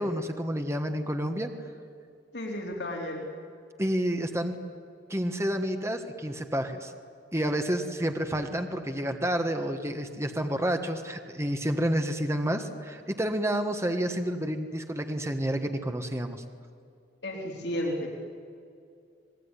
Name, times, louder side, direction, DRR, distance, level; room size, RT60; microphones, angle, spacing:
voice 1, 0.0-1.5 3.8-4.6 5.1-6.9 7.3-16.4, equal, 15° right, 6 dB, 1.5 m, -29 dB
voice 2, 2.3-3.3 17.2-18.1, left 1 dB, 65° left, 0 dB, 3.7 m, -33 dB
26.0 x 20.5 x 9.9 m, 2.4 s
head